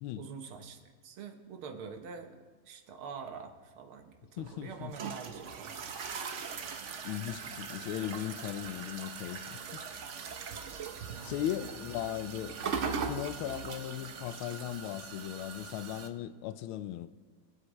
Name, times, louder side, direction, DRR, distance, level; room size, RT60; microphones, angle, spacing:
voice 1, 0.2-5.8 11.1-11.7, right 6 dB, 85° right, 1.9 m, -46 dB
voice 2, 4.4-4.9 7.0-9.8 11.2-12.6 12.9-17.1, left 12 dB, 85° left, 1.4 m, -38 dB
sound 1, 4.4-16.1, right 5 dB, 65° right, 0.7 m, -40 dB
23.5 x 8.1 x 3.1 m
omnidirectional pair, 2.3 m